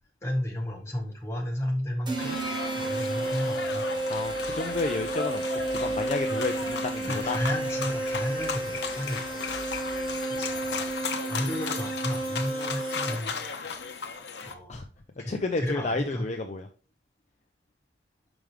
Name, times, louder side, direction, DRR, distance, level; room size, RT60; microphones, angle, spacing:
voice 1, 0.2-2.4 2.8-3.9 6.3-6.4 7.0-9.4 10.3-10.5 11.3-13.4 14.4-14.8 15.2-16.3, left 1 dB, 15° left, -1 dB, 1.6 m, -33 dB
sound 1, 2.1-13.4, right 2 dB, 25° right, 1.0 m, -32 dB
sound 2, 2.2-14.5, left 5 dB, 70° left, 0.8 m, -36 dB
sound 3, 3.8-10.2, equal, 80° right, 1.7 m, -51 dB
voice 2, 4.1-5.4 5.7-7.4 14.7-14.8 15.3-16.7, left 3 dB, 40° left, 4 dB, 0.5 m, -31 dB
6.0 x 5.1 x 3.3 m, 0.36 s
head